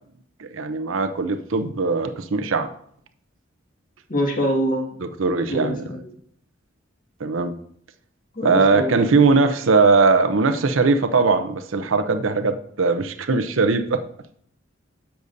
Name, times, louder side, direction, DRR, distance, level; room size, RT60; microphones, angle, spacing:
voice 1, 0.4-2.7 5.0-5.8 7.2-7.5 8.4-14.0, right 4 dB, 80° right, 9 dB, 0.7 m, -20 dB
voice 2, 4.1-4.8 5.5-6.0 8.4-8.9, equal, 45° left, 0 dB, 1.9 m, -24 dB
10.0 x 8.0 x 2.7 m, 0.65 s
head